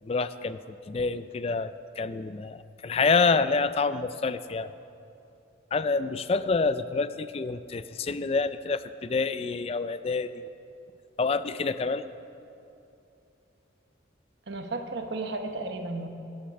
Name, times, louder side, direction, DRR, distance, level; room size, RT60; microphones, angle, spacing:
voice 1, 0.0-0.6 0.9-4.7 5.7-10.4 11.2-12.0, left 4 dB, 30° left, 13 dB, 0.3 m, -27 dB
voice 2, 14.5-16.1, right 2 dB, 65° right, 5 dB, 1.0 m, -33 dB
12.5 x 10.0 x 5.8 m, 2.8 s
head